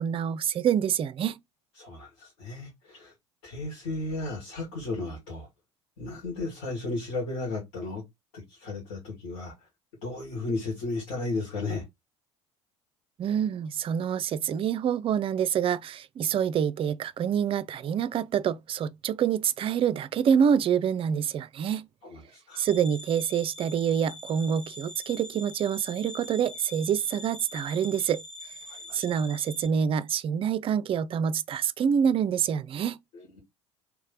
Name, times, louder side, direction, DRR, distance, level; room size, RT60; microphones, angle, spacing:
voice 1, 0.0-1.4 13.2-21.9 22.6-28.2 28.9-33.0, right 8 dB, 35° right, 0.4 m, -26 dB
voice 2, 1.8-3.1 3.4-5.5 6.0-8.0 8.3-9.7 10.0-11.9 22.0-22.6 28.6-29.2 33.1-33.4, left 2 dB, 65° left, 2.0 m, -34 dB
sound 1, 22.5-29.7, left 1 dB, 5° left, 0.9 m, -44 dB
3.3 x 3.2 x 3.7 m
hypercardioid pair, 65°, 16 cm